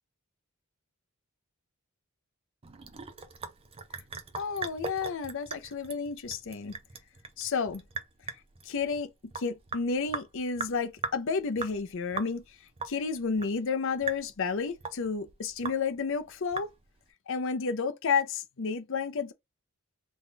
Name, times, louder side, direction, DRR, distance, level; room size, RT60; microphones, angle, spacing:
Sink (filling or washing) / Drip, 2.6-17.1, right 4 dB, 25° right, 0.5 m, -41 dB
voice 1, 4.4-6.8 7.4-7.8 8.6-12.4 12.8-16.7 17.3-19.3, left 5 dB, 60° left, 0.6 m, -31 dB
3.5 x 2.3 x 4.0 m
head